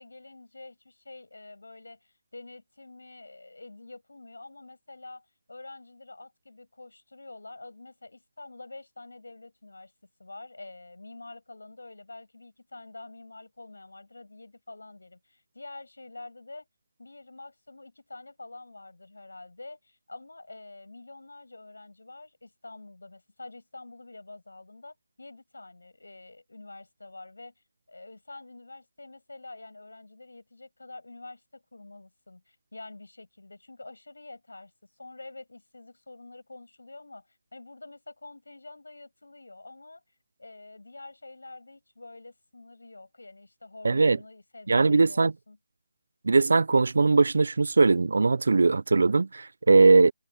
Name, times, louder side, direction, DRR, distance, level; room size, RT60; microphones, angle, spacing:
voice 1, 0.0-9.9 10.2-16.7 17.0-27.5 27.9-40.0 40.4-45.6, left 2 dB, 80° left, 7.0 m, -47 dB
voice 2, 43.8-44.2 44.7-45.3 46.2-50.1, right 3 dB, 65° right, 0.7 m, -20 dB
figure-of-eight pair, 150°, 0 cm